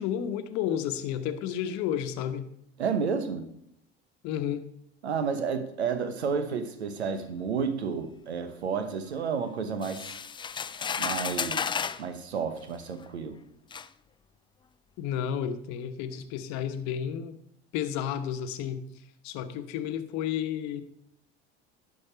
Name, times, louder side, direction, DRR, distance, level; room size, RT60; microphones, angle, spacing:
voice 1, 0.0-2.5 4.2-4.6 15.0-17.3 17.7-20.8, left 9 dB, 60° left, 10 dB, 1.1 m, -32 dB
voice 2, 2.8-3.5 5.0-10.2 11.0-13.4, right 6 dB, 90° right, 10 dB, 1.1 m, -31 dB
sound 1, 9.8-12.0 13.0-13.1 13.7-13.9, left 6 dB, 15° left, 0.4 m, -32 dB
11.0 x 5.3 x 5.7 m, 0.74 s
hypercardioid pair, 70°, 32 cm